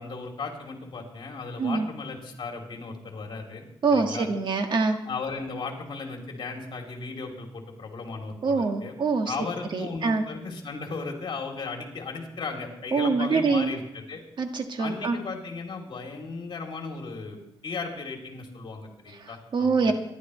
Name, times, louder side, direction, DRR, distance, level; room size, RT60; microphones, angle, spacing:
voice 1, 0.0-4.3 5.0-9.0 9.3-14.2 14.8-19.9, left 4 dB, 60° left, 1 dB, 3.1 m, -36 dB
voice 2, 3.8-5.0 8.4-9.3 9.7-10.2 12.9-13.7 14.4-15.2 19.2-19.9, right 4 dB, 55° right, 5 dB, 1.6 m, -25 dB
26.0 x 11.5 x 3.2 m, 0.85 s
wide cardioid pair, 130°, 9 cm